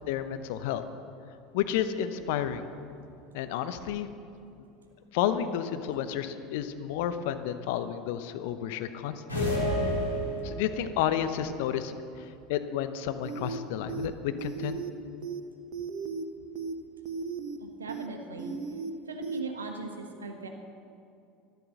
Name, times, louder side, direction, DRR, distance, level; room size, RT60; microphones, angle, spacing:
voice 1, 0.1-0.8 1.5-2.7 3.3-4.1 5.1-9.5 10.4-14.8, left 10 dB, 60° left, 10 dB, 0.8 m, -31 dB
sound 1, 9.3-10.8, equal, 85° left, 3.7 m, -29 dB
sound 2, 13.2-13.6 13.9-14.1 14.4-14.9 15.2-15.4 15.7-16.2 16.5-16.7 17.0-17.6 17.9-18.1 18.4-18.9 19.2-19.4, right 5 dB, 55° right, 1.2 m, -35 dB
voice 2, 17.6-18.5 19.1-20.5, right 3 dB, 80° right, 4 dB, 1.4 m, -39 dB
12.5 x 12.0 x 6.5 m, 2.6 s
figure-of-eight pair, 70°, 0 cm